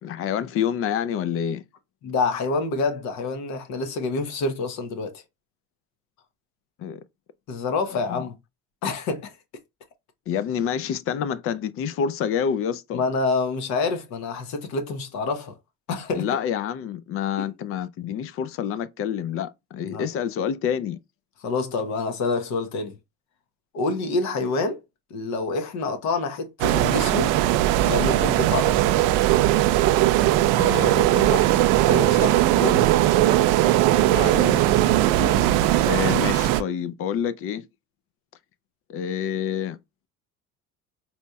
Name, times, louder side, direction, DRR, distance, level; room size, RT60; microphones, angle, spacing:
voice 1, 0.0-1.6 6.8-7.0 8.1-8.3 10.3-13.0 16.1-21.0 30.6-31.7 34.1-34.6 35.8-37.7 38.9-39.8, left 8 dB, 45° left, 0.4 m, -28 dB
voice 2, 2.0-5.2 7.5-8.3 8.8-9.3 12.9-15.5 15.9-16.3 17.4-17.5 19.8-20.1 21.4-22.9 23.7-24.8 25.1-27.4 27.8-28.8 31.9-32.9 35.2-35.5, left 3 dB, 65° left, 0.9 m, -27 dB
sound 1, 26.6-36.6, right 14 dB, 85° right, 0.5 m, -19 dB
4.2 x 2.8 x 2.2 m
cardioid pair, 125°, 31 cm